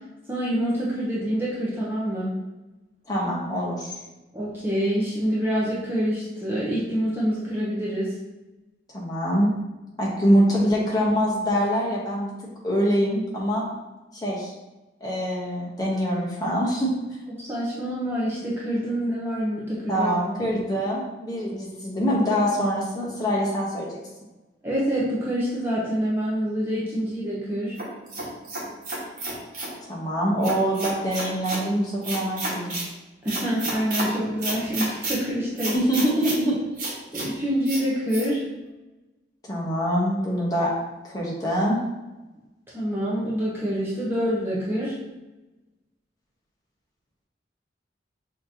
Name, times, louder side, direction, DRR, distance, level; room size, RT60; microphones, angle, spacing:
voice 1, 0.3-2.3 4.3-8.2 17.4-20.1 20.5-20.6 24.6-27.8 33.2-35.8 37.1-38.4 42.7-45.0, equal, 10° right, -7 dB, 0.7 m, -26 dB
voice 2, 3.1-4.0 8.9-9.5 10.0-12.3 12.6-13.7 14.2-14.5 15.0-16.9 19.9-24.0 29.8-32.8 35.7-36.6 39.4-40.7 41.0-41.8, equal, 20° left, -5 dB, 1.0 m, -24 dB
sound 1, 27.8-29.7 30.4-31.6 32.0-32.9 33.3-34.1 34.4-35.2 35.6-36.4 36.8-37.3 37.7-37.8 38.1-38.3, right 2 dB, 45° right, 1.3 m, -31 dB
6.3 x 2.9 x 2.8 m, 1.1 s
head